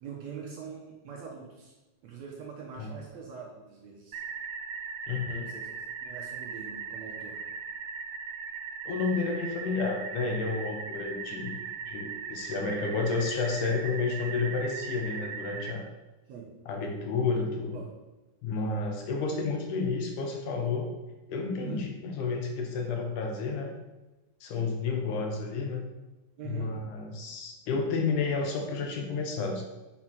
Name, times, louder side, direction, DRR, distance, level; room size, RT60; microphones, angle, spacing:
voice 1, 0.0-1.7 2.0-4.2 5.4-7.4 16.3-16.5 17.7-17.9 21.6-21.9 26.4-26.8, right 6 dB, 65° right, -2 dB, 1.9 m, -43 dB
sound 1, 4.1-15.7, right 6 dB, 85° right, 2.4 m, -39 dB
voice 2, 5.1-5.5 8.9-11.6 11.9-15.8 16.7-17.8 18.4-20.9 21.3-23.7 24.4-25.8 26.4-29.6, left 4 dB, 70° left, 2 dB, 2.2 m, -31 dB
6.2 x 6.1 x 6.0 m, 1.1 s
omnidirectional pair, 4.1 m